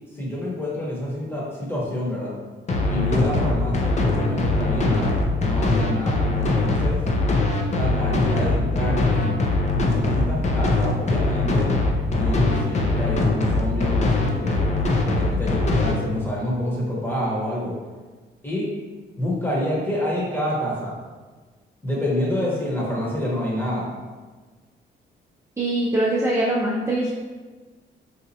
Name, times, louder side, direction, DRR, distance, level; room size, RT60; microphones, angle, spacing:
voice 1, 0.1-2.3 2.8-7.0 7.7-9.4 9.7-11.7 12.1-14.6 15.1-17.7 18.4-18.7 19.2-21.0 21.8-23.9, left 1 dB, 10° left, -5 dB, 1.1 m, -27 dB
sound 1, 2.7-15.9, left 2 dB, 35° left, 0.5 m, -21 dB
voice 2, 25.6-27.1, right 1 dB, 15° right, -6 dB, 0.5 m, -22 dB
4.1 x 2.4 x 2.8 m, 1.4 s
cardioid pair, 90°, 20 cm